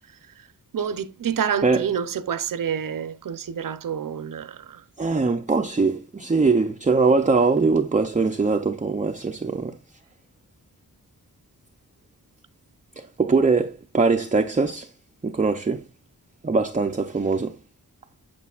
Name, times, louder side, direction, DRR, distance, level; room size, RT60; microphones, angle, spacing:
voice 1, 0.7-4.8, right 8 dB, 60° right, 0.7 m, -28 dB
voice 2, 5.0-9.8 13.0-14.9 15.2-15.8 16.4-17.6, right 4 dB, 20° right, 0.5 m, -22 dB
8.3 x 6.8 x 2.4 m
wide cardioid pair, 110°, 37 cm